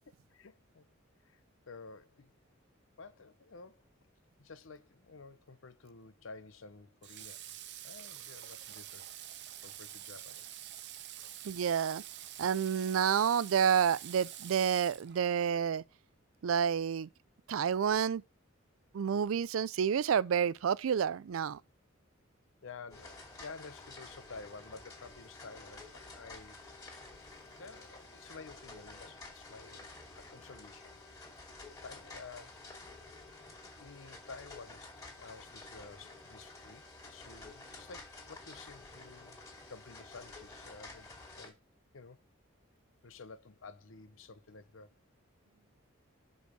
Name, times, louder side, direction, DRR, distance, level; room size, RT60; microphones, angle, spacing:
voice 1, 0.3-0.9 1.2-1.4 1.7-2.3 3.0-3.8 4.4-7.5 7.8-9.1 9.6-10.6 22.6-26.7 27.5-29.9 30.1-30.9 31.8-32.6 33.8-39.4 39.7-41.6 41.9-42.2 43.0-44.9, left 4 dB, 70° left, 0.8 m, -51 dB
Water / Water tap faucet, 7.0-15.5, right 12 dB, 60° right, 0.7 m, -47 dB
voice 2, 11.4-12.0 12.4-15.8 16.4-17.1 17.5-18.2 18.9-21.6, right 8 dB, 85° right, 0.4 m, -29 dB
sound 1, 22.9-41.5, left 3 dB, 20° left, 2.6 m, -51 dB
6.4 x 5.4 x 5.0 m
head